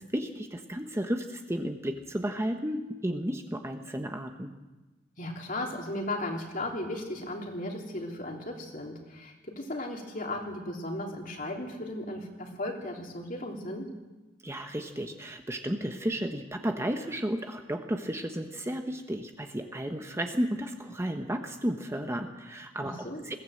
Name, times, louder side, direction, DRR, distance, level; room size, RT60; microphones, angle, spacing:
voice 1, 0.1-4.5 14.4-23.3, equal, 15° right, 5 dB, 1.2 m, -33 dB
voice 2, 5.2-13.9 22.8-23.3, left 1 dB, 45° left, 1 dB, 3.3 m, -36 dB
22.0 x 16.0 x 7.9 m, 1.1 s
head